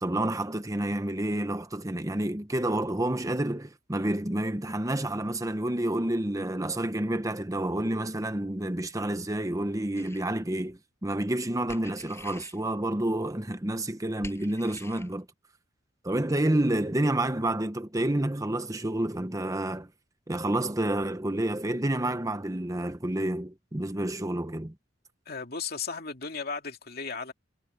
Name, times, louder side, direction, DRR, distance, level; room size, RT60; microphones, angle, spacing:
voice 1, 0.0-15.3 16.0-19.9 20.3-24.7, right 1 dB, 20° right, 1.0 m, -29 dB
sound 1, 10.0-10.3 11.7-12.6 14.2-15.1, left 2 dB, 15° left, 5.9 m, -46 dB
voice 2, 25.3-27.3, left 5 dB, 55° left, 2.7 m, -35 dB
head